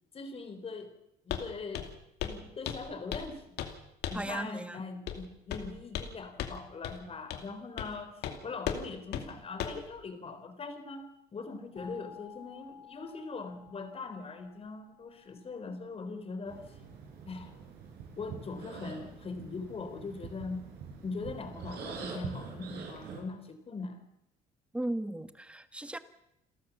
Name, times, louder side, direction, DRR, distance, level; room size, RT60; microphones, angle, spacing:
voice 1, 0.1-0.9 1.3-1.9 2.2-3.6 4.1-16.6 17.3-17.6 18.2-20.7 21.0-24.0, left 4 dB, 35° left, 9 dB, 3.8 m, -41 dB
Walk footsteps, 1.3-1.5 1.7-1.9 2.2-2.4 2.7-3.3 3.6-3.8 4.0-4.3 5.1-5.2 5.5-6.1 6.4-6.6 6.8-7.0 7.3-7.5 7.8-7.9 8.2-8.4 8.7-8.8 9.1-9.2 9.6-9.8, left 9 dB, 80° left, 2.6 m, -36 dB
voice 2, 4.1-4.8 24.7-26.0, right 1 dB, 5° right, 11 dB, 1.4 m, -36 dB
sound 1, 11.8-16.5, left 7 dB, 60° left, 5.9 m, -54 dB
sound 2, 16.5-23.2, right 5 dB, 75° right, 6.8 m, -44 dB
29.0 x 13.0 x 7.2 m, 0.82 s
cardioid pair, 110°, 17 cm